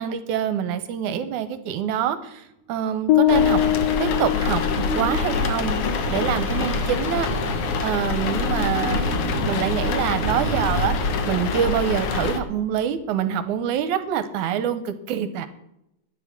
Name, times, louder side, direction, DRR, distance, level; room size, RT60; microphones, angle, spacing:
voice 1, 0.0-3.6 4.0-5.8 6.1-7.3 7.8-9.2 9.5-10.9 11.3-15.5, right 9 dB, 75° right, 12 dB, 2.0 m, -25 dB
sound 1, 3.1-5.3, left 12 dB, 85° left, 2.6 m, -21 dB
sound 2, 3.3-12.4, left 4 dB, 65° left, 1.5 m, -25 dB
sound 3, 4.2-13.0, right 2 dB, 5° right, 1.8 m, -33 dB
10.5 x 10.5 x 5.9 m, 0.82 s
omnidirectional pair, 4.0 m